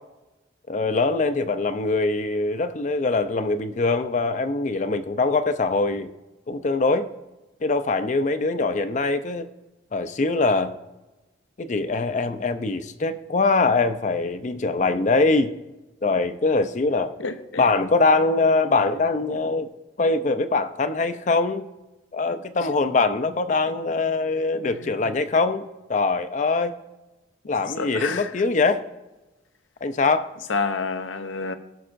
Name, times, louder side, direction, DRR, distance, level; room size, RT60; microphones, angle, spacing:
voice 1, 0.7-6.1 6.5-7.1 7.6-9.5 9.9-10.7 11.6-15.5 16.0-17.1 17.6-19.7 20.0-21.7 22.1-25.6 25.9-26.8 27.5-28.8 29.8-30.3, left 3 dB, 40° left, 0.5 m, -23 dB
voice 2, 17.2-17.7 24.7-25.2 27.8-28.4 30.5-31.5, left 4 dB, 80° left, 0.7 m, -29 dB
17.5 x 6.0 x 2.6 m
head